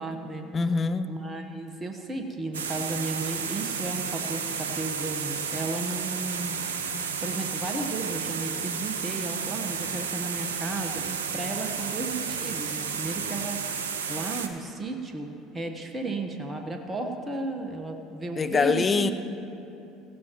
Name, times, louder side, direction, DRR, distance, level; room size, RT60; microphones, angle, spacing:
voice 1, 0.0-0.4 1.1-6.6 7.2-13.6 14.1-19.1, right 2 dB, 20° right, 4 dB, 1.2 m, -34 dB
voice 2, 0.5-1.1 18.4-19.1, left 4 dB, 30° left, 10 dB, 0.6 m, -24 dB
sound 1, 2.5-14.5, right 6 dB, 75° right, 0.7 m, -32 dB
19.5 x 15.5 x 3.0 m, 3.0 s
figure-of-eight pair, 65°, 0 cm